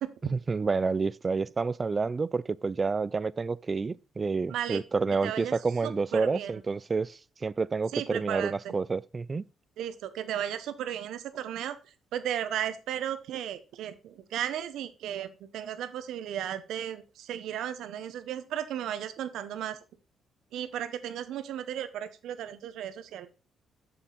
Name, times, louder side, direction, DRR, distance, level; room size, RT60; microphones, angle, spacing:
voice 1, 0.3-9.4, right 4 dB, 30° right, 0.3 m, -29 dB
voice 2, 4.5-4.8 5.2-5.5 5.8-6.6 7.9-8.8 9.8-11.8 12.1-19.8 20.5-23.3, right 10 dB, 80° right, 0.9 m, -35 dB
7.0 x 7.0 x 4.0 m
cardioid pair, 90°, 0 cm